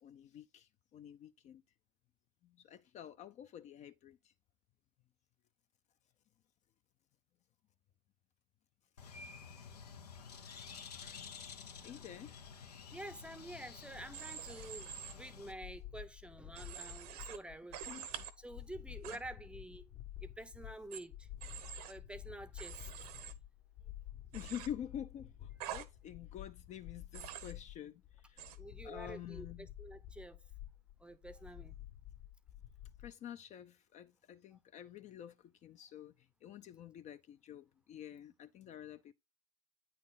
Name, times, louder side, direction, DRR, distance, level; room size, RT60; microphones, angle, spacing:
voice 1, 0.0-1.6 2.4-4.3 11.8-12.3 17.9-18.1 24.3-28.5 28.8-29.7 33.0-39.1, left 10 dB, 35° left, 0.5 m, -48 dB
Bird, 9.0-15.5, left 6 dB, 90° left, 0.9 m, -51 dB
voice 2, 12.9-17.8 18.4-19.9 20.2-21.3 21.8-23.1 28.6-30.4 31.0-31.8, right 1 dB, 5° right, 0.6 m, -49 dB
sound 1, 13.4-33.1, left 12 dB, 55° left, 1.7 m, -51 dB
Human voice / Train, 14.1-15.1 16.5-17.4 17.7-18.3 19.0-19.2 20.9-21.0 21.4-21.9 22.6-23.3 24.3-24.7 25.6-25.8 27.1-27.5 28.4-28.6, right 10 dB, 70° right, 0.9 m, -46 dB
8.8 x 4.1 x 3.9 m
hypercardioid pair, 85°, 20 cm